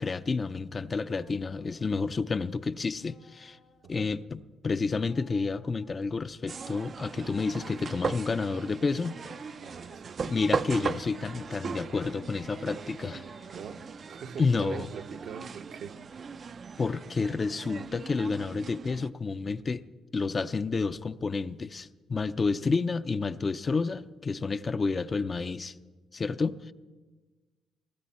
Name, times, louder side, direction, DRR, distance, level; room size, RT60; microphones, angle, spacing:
voice 1, 0.0-3.6 3.9-9.2 10.2-13.3 14.4-14.9 16.8-19.8 20.1-25.7 26.1-26.7, left 4 dB, 35° left, 0.5 m, -30 dB
sound 1, 0.9-2.0 2.9-3.9 4.9-6.2 6.9-8.2 8.9-10.0 10.9-12.1 12.9-14.3 14.9-16.0 16.9-18.3, left 6 dB, 80° left, 2.5 m, -61 dB
sound 2, 6.5-19.1, right 5 dB, 45° right, 0.4 m, -38 dB
voice 2, 9.6-10.3 13.5-15.9, right 6 dB, 70° right, 0.8 m, -42 dB
20.0 x 13.5 x 4.2 m
cardioid pair, 90°, 0 cm